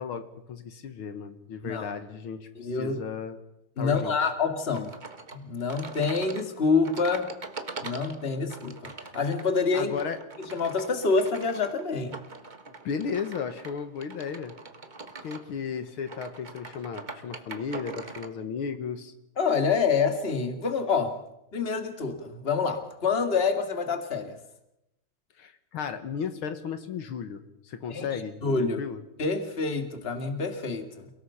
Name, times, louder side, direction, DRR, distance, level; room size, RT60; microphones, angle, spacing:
voice 1, 0.0-3.4 3.8-4.1 9.7-10.2 12.8-14.5 15.2-19.1 25.4-29.0, left 6 dB, 75° left, 9 dB, 2.2 m, -35 dB
voice 2, 1.6-1.9 2.5-3.0 3.8-4.9 5.3-7.3 7.8-9.9 10.5-12.2 19.4-21.2 21.5-24.4 27.9-28.8 29.2-31.1, left 4 dB, 30° left, 6 dB, 2.2 m, -27 dB
sound 1, 4.7-18.3, right 3 dB, 25° right, 1.2 m, -43 dB
29.5 x 18.0 x 5.7 m, 0.87 s
omnidirectional pair, 2.3 m